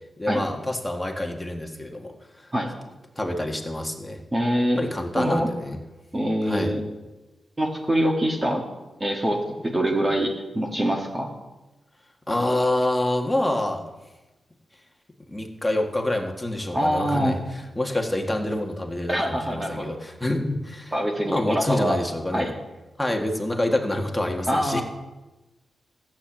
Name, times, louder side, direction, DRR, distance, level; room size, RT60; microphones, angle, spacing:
voice 1, 0.2-2.1 3.2-4.2 4.8-5.8 6.5-6.7 12.3-13.9 15.3-17.4 17.8-20.9 21.2-22.5 23.0-24.8, left 1 dB, 10° left, 2 dB, 1.7 m, -27 dB
voice 2, 4.3-4.8 5.2-5.5 6.1-6.8 7.6-8.6 9.0-11.3 16.7-17.4 19.1-19.9 20.9-22.0 22.3-22.5 24.5-24.8, equal, 20° right, 0 dB, 1.7 m, -24 dB
15.5 x 8.8 x 7.6 m, 1.1 s
wide cardioid pair, 135°, 0 cm